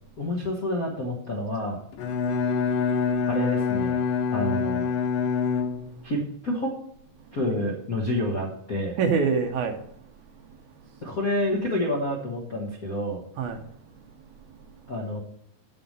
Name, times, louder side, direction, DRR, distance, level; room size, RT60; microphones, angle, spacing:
voice 1, 0.2-1.8 3.3-4.0 4.3-4.9 6.0-6.7 7.3-9.0 11.0-13.2 14.9-15.2, left 1 dB, 50° left, 1.0 m, -28 dB
Bowed string instrument, 1.9-6.2, left 5 dB, 75° left, 2.7 m, -26 dB
voice 2, 9.0-9.8 10.4-10.9 13.4-13.7 14.5-14.9, right 5 dB, 70° right, 2.1 m, -27 dB
8.2 x 6.4 x 6.6 m
omnidirectional pair, 3.9 m